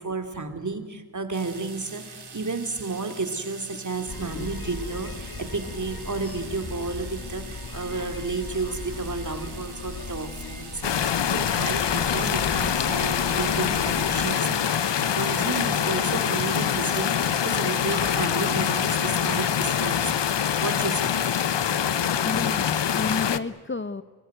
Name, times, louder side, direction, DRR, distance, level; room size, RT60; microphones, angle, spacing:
voice 1, 0.0-14.9 15.1-20.3 20.6-21.6, right 3 dB, 45° right, 8 dB, 2.7 m, -32 dB
sound 1, 1.3-19.1, right 4 dB, 65° right, 2.6 m, -44 dB
sound 2, 4.1-14.3, left 4 dB, 55° left, 1.9 m, -37 dB
sound 3, 10.8-23.4, left 8 dB, 80° left, 0.8 m, -24 dB
voice 2, 22.1-24.0, left 4 dB, 30° left, 14 dB, 0.7 m, -31 dB
24.0 x 19.5 x 9.3 m, 1.5 s
cardioid pair, 55°, 42 cm